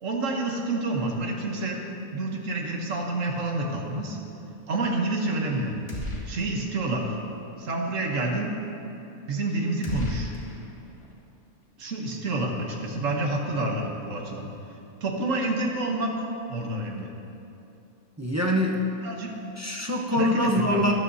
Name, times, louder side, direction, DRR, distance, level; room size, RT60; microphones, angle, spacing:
voice 1, 0.0-1.8 2.1-4.2 4.7-5.7 6.3-7.1 7.6-8.5 9.3-10.3 11.8-14.5 15.0-16.1 16.5-17.1 19.0-19.3 20.1-20.8, right 2 dB, 65° right, 1 dB, 1.5 m, -28 dB
sound 1, 5.9-6.8 7.1-7.2 9.8-11.1, equal, 25° left, 1.2 m, -35 dB
voice 2, 18.2-18.8 19.6-20.9, left 1 dB, 20° right, -1 dB, 0.5 m, -24 dB
12.5 x 12.0 x 2.8 m, 2.8 s
omnidirectional pair, 1.5 m